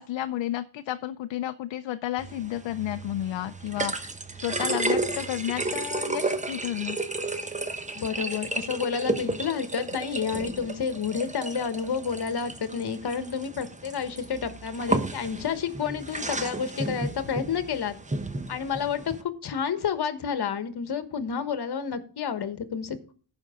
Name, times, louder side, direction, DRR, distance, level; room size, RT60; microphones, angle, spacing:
voice 1, 0.0-4.1 4.4-7.0, left 13 dB, 75° left, 10 dB, 0.6 m, -32 dB
sound 1, 2.2-19.2, right 2 dB, 15° right, 0.9 m, -33 dB
voice 2, 7.9-18.0 18.5-23.1, left 6 dB, 60° left, 11 dB, 1.3 m, -30 dB
15.5 x 5.4 x 3.7 m, 0.41 s
cardioid pair, 80°, 45 cm